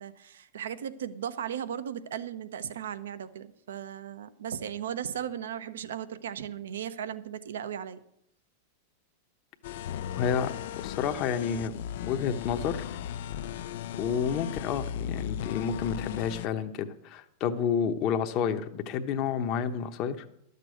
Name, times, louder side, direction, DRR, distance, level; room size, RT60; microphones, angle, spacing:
voice 1, 0.0-8.0, right 9 dB, 80° right, 13 dB, 0.8 m, -36 dB
sound 1, 9.6-16.5, left 10 dB, 70° left, 0.4 m, -36 dB
voice 2, 10.2-11.8 12.0-12.9 14.0-20.2, left 7 dB, 45° left, 7 dB, 0.9 m, -30 dB
12.5 x 6.8 x 7.9 m, 0.76 s
hypercardioid pair, 105°, 0 cm